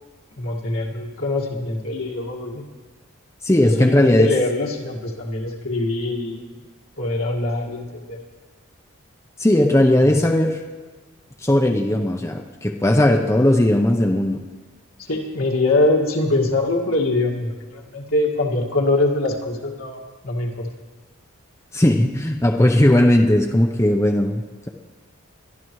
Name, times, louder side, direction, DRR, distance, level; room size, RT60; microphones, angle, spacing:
voice 1, 0.4-2.6 3.6-6.5 7.0-8.2 10.1-10.2 15.1-20.7, left 2 dB, 75° left, 0 dB, 1.9 m, -23 dB
voice 2, 3.4-4.3 9.4-10.6 11.4-14.4 21.7-24.7, left 1 dB, 15° left, 2 dB, 0.6 m, -17 dB
22.5 x 12.0 x 3.1 m, 1.3 s
head